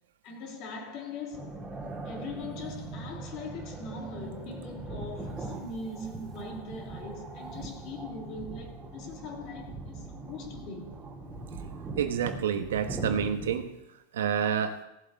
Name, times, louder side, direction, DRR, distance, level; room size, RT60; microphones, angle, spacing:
voice 1, 0.2-1.6 2.0-11.0, left 3 dB, 45° left, 2.3 m, -41 dB
sound 1, 1.3-13.6, right 2 dB, 15° right, 3.3 m, -41 dB
voice 2, 12.0-13.7 14.1-14.8, right 8 dB, 90° right, 1.1 m, -28 dB
17.0 x 7.6 x 3.9 m
supercardioid pair, 145°, 0 cm